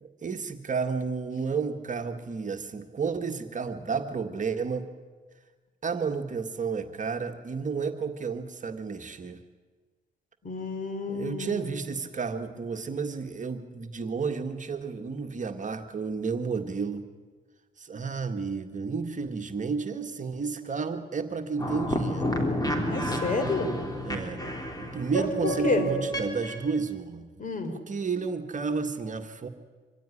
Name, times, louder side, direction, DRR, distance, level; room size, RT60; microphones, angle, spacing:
voice 1, 0.0-4.9 5.8-9.4 11.1-17.1 17.8-22.3 24.0-24.4 24.8-27.3 27.7-29.5, right 5 dB, 40° right, 6 dB, 1.8 m, -31 dB
voice 2, 10.4-11.8 22.9-23.7 25.2-25.9 27.4-27.7, left 4 dB, 40° left, 8 dB, 3.7 m, -30 dB
sound 1, 21.6-26.7, equal, 20° left, 3.7 m, -30 dB
25.0 x 15.5 x 9.9 m, 1.4 s
cardioid pair, 90°, 20 cm